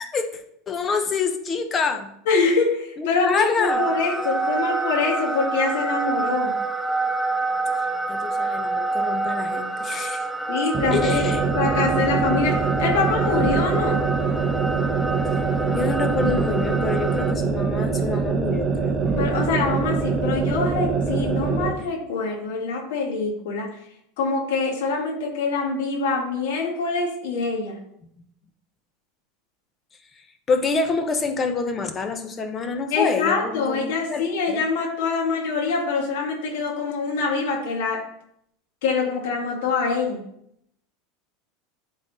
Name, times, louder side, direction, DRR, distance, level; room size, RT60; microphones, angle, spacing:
voice 1, 0.0-2.1 3.0-3.8 8.1-10.3 10.9-11.4 15.7-19.0 21.8-21.9 30.5-34.2 34.5-34.6, left 4 dB, 25° left, 7 dB, 1.0 m, -27 dB
voice 2, 2.3-6.5 10.5-11.2 11.5-14.0 19.2-23.7 24.2-27.8 32.9-38.0 38.8-40.2, left 4 dB, 80° left, 0 dB, 2.0 m, -24 dB
sound 1, 3.7-17.3, right 3 dB, ahead, 0.5 m, -27 dB
sound 2, 10.7-21.8, right 5 dB, 20° right, 1.1 m, -24 dB
11.5 x 4.1 x 4.2 m, 0.73 s
supercardioid pair, 140°, 0 cm